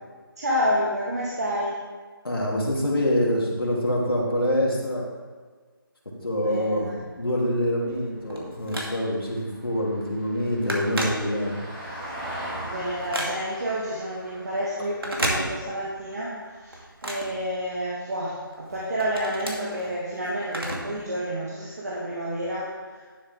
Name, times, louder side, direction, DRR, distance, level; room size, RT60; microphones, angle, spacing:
voice 1, 0.4-1.8 6.4-7.1 12.6-23.0, equal, 45° right, -6 dB, 1.7 m, -29 dB
voice 2, 2.2-5.1 6.2-6.9 7.2-11.6, left 1 dB, 75° left, -3 dB, 2.9 m, -25 dB
Vehicle, 7.0-17.4 19.7-19.8, right 1 dB, 15° right, 2.0 m, -42 dB
Telephone, 7.9-9.3 9.8-10.0 10.3-11.8 12.2-13.7 14.9-16.0 16.3-18.1 18.5-21.0 21.3-21.4 22.3-22.4, right 1 dB, 80° right, 2.2 m, -32 dB
11.5 x 7.3 x 3.6 m, 1.5 s
figure-of-eight pair, 165°, 12 cm